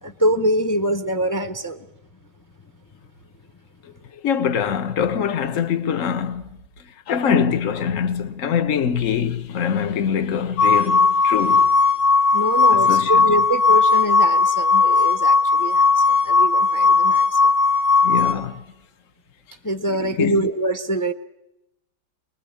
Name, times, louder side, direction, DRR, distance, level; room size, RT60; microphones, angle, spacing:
voice 1, 0.0-1.8 12.3-17.5 19.6-21.1, right 1 dB, 25° left, 0.4 m, -24 dB
voice 2, 4.2-6.5 7.1-11.7 12.7-13.2 18.0-18.6 19.9-20.5, left 7 dB, 45° left, 1.5 m, -23 dB
sound 1, 10.6-18.3, left 4 dB, 75° left, 3.5 m, -17 dB
24.0 x 21.0 x 8.8 m
omnidirectional pair, 2.2 m